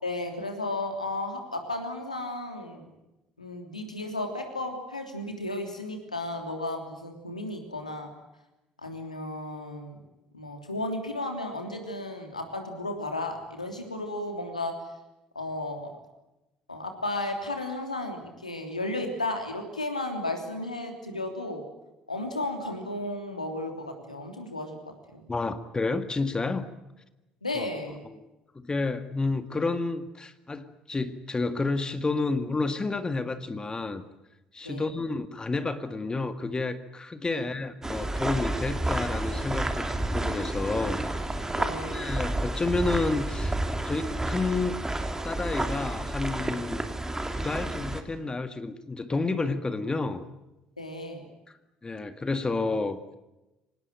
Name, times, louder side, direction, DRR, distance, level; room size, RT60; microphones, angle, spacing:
voice 1, 0.0-2.9 3.4-8.1 8.8-10.0 10.3-14.8 15.3-15.9 16.7-21.6 22.1-25.2 27.4-28.1 34.6-34.9 37.3-37.4 41.6-42.1 50.8-51.3, left 2 dB, 85° left, 4 dB, 3.2 m, -34 dB
voice 2, 25.3-26.7 27.6-27.7 28.0-28.2 28.6-34.0 34.5-41.5 41.9-43.6 43.8-44.8 45.2-46.8 47.3-50.2 51.8-53.2, left 3 dB, 20° left, 10 dB, 1.9 m, -30 dB
sound 1, 37.8-48.0, right 1 dB, 15° right, 3.2 m, -30 dB
25.5 x 19.5 x 9.1 m, 0.98 s
figure-of-eight pair, 50°, 4 cm